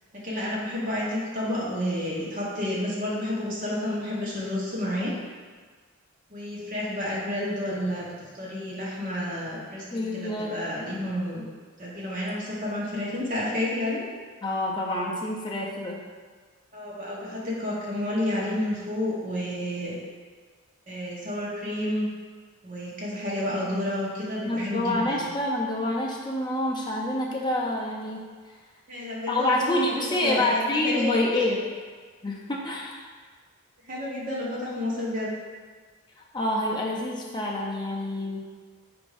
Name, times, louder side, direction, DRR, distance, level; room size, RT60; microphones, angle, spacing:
voice 1, 0.1-5.1 6.3-9.8 10.1-11.4 11.8-14.0 16.7-19.9 20.9-22.1 22.6-25.3 28.9-30.5 30.8-31.2 33.9-35.3, left 1 dB, 40° right, -6 dB, 1.0 m, -30 dB
voice 2, 9.9-10.6 14.4-16.0 24.4-28.2 29.3-31.6 32.2-33.0 36.3-38.4, left 1 dB, 20° left, -2 dB, 0.5 m, -27 dB
4.2 x 2.6 x 4.8 m, 1.5 s
head